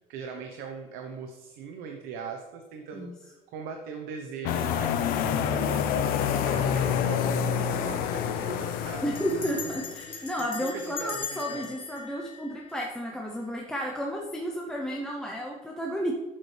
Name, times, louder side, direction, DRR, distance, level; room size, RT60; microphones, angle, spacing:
voice 1, 0.1-9.0 9.3-9.5 10.0-11.7, right 5 dB, 70° right, 4 dB, 0.9 m, -40 dB
sound 1, 4.5-10.0, left 8 dB, 65° left, 0.8 m, -27 dB
voice 2, 9.0-16.1, equal, 5° left, -1 dB, 0.7 m, -32 dB
Bell, 9.2-13.2, left 7 dB, 35° left, 1.3 m, -40 dB
11.0 x 7.4 x 3.3 m, 1.2 s
cardioid pair, 155°, 16 cm